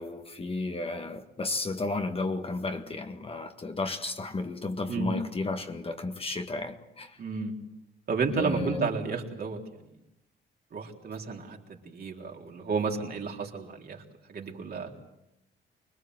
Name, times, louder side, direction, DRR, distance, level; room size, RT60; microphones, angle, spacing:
voice 1, 0.0-7.2 8.4-8.8, left 3 dB, 30° left, 1.9 m, -33 dB
voice 2, 7.2-7.5 8.1-9.6 10.7-14.0 14.3-14.9, right 4 dB, 50° right, 3.8 m, -32 dB
25.0 x 21.0 x 8.0 m
cardioid pair, 90°, 20 cm